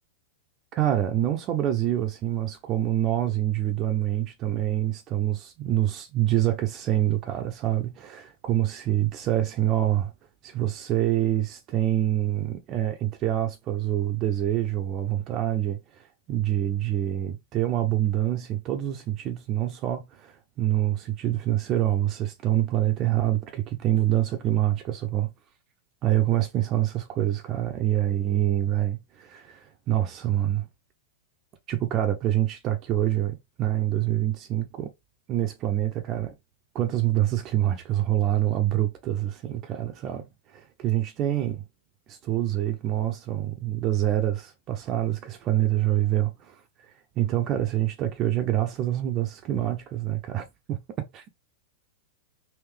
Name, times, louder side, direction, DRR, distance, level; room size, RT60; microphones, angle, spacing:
voice 1, 0.7-10.1 10.4-25.3 26.0-30.7 31.7-34.9 35.3-36.3 36.7-41.6 42.1-46.9 47.2-51.3, right 12 dB, 40° right, 0.6 m, -26 dB
3.6 x 2.6 x 3.3 m
hypercardioid pair, 115°, 0 cm